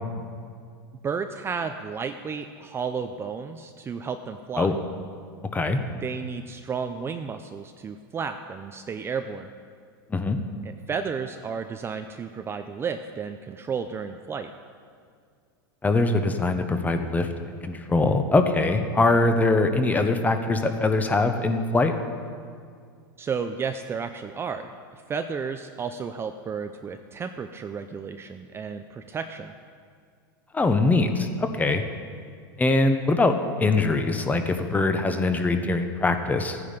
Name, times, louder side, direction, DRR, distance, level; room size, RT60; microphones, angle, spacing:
voice 1, 1.0-4.7 6.0-9.5 10.6-14.5 23.2-29.5, right 6 dB, 20° right, 7 dB, 0.5 m, -32 dB
voice 2, 15.8-21.9 30.5-31.8 32.6-36.7, left 3 dB, 15° left, 7 dB, 1.0 m, -22 dB
14.5 x 9.5 x 5.2 m, 2.2 s
supercardioid pair, 120°, 12 cm